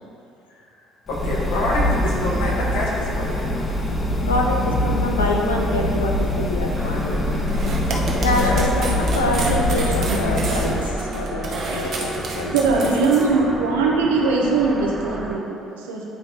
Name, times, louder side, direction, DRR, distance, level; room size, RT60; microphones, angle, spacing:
voice 1, 1.1-3.7 7.9-8.7, left 2 dB, 65° left, -5 dB, 1.5 m, -26 dB
sound 1, 1.1-10.9, left 1 dB, 25° left, 1.1 m, -23 dB
voice 2, 4.3-7.2 8.2-12.9, left 2 dB, 80° left, 0 dB, 0.6 m, -25 dB
sound 2, 6.7-15.4, right 1 dB, 10° right, 0.9 m, -33 dB
sound 3, 7.5-13.3, right 3 dB, 50° right, 1.0 m, -31 dB
voice 3, 12.5-16.0, right 4 dB, 75° right, -2 dB, 0.9 m, -21 dB
9.1 x 4.4 x 3.9 m, 2.6 s
figure-of-eight pair, 50°, 0 cm